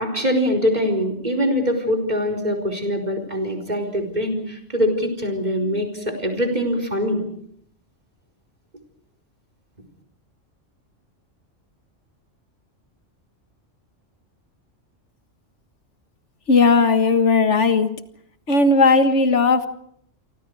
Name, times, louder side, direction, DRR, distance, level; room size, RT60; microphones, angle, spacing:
voice 1, 0.0-7.2, equal, 35° right, 6 dB, 4.8 m, -23 dB
voice 2, 16.5-17.9 18.5-19.7, left 3 dB, 70° left, 8 dB, 2.0 m, -16 dB
28.5 x 24.5 x 4.9 m, 0.67 s
omnidirectional pair, 1.3 m